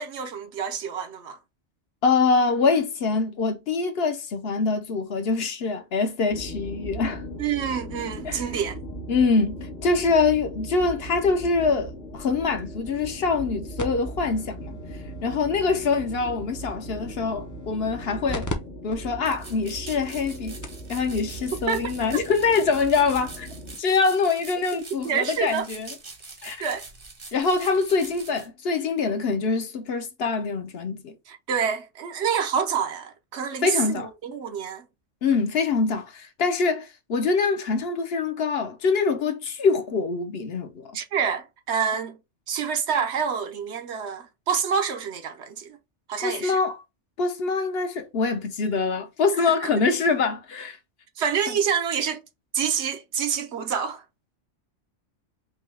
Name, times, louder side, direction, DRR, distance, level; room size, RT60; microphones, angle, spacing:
voice 1, 0.0-1.4 7.4-8.8 21.7-22.2 25.0-25.7 26.6-26.9 31.3-34.9 40.9-42.2 42.5-45.8 46.1-46.6 49.4-49.7 51.2-52.2 52.5-54.0, right 7 dB, 65° right, 0.9 m, -27 dB
voice 2, 2.0-7.2 8.2-8.4 9.1-14.8 15.2-18.5 18.8-20.6 20.9-23.5 23.8-25.9 26.4-26.6 27.3-31.2 33.6-34.1 35.2-40.9 46.2-46.7 47.2-50.8 51.5-51.6, left 4 dB, 60° left, 0.9 m, -24 dB
sound 1, 6.3-23.8, right 1 dB, 90° left, 1.6 m, -39 dB
sound 2, 13.8-18.5 18.9-19.0 19.6-19.7 20.3-20.4 20.6-20.9 22.1-22.2, equal, 25° left, 0.5 m, -38 dB
sound 3, 19.2-28.5, right 3 dB, 30° right, 0.7 m, -44 dB
5.3 x 2.2 x 3.3 m
omnidirectional pair, 1.2 m